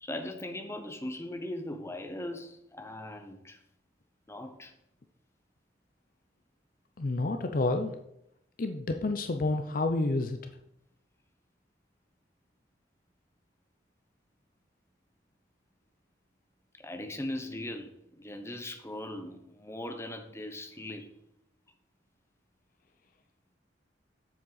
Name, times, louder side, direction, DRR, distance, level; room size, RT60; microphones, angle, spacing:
voice 1, 0.0-3.6 4.3-4.7 16.8-21.1, left 1 dB, 15° left, 5 dB, 0.9 m, -39 dB
voice 2, 7.0-7.9 8.6-10.4, left 2 dB, 45° left, 7 dB, 0.5 m, -29 dB
7.4 x 7.2 x 4.0 m, 0.78 s
head